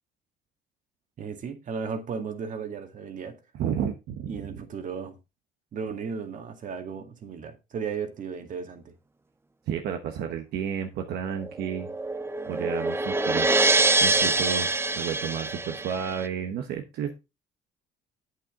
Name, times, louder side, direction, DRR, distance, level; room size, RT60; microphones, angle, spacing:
voice 1, 1.2-3.3 4.3-5.2 5.7-8.8, right 6 dB, 50° right, 2.1 m, -35 dB
voice 2, 3.5-4.6 9.7-11.9 12.4-13.5 14.0-14.7 14.9-17.1, right 8 dB, 75° right, 1.1 m, -31 dB
sound 1, 11.4-16.3, right 2 dB, 15° right, 0.7 m, -25 dB
8.6 x 8.3 x 3.7 m
cardioid pair, 110°, 17 cm